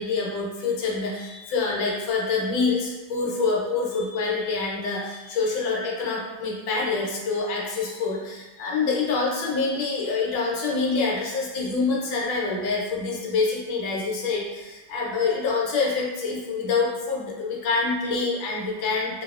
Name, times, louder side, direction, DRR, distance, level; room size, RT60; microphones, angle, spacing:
voice 1, 0.0-19.2, left 4 dB, 75° left, -3 dB, 1.3 m, -26 dB
2.7 x 2.6 x 2.3 m, 1.1 s
omnidirectional pair, 2.0 m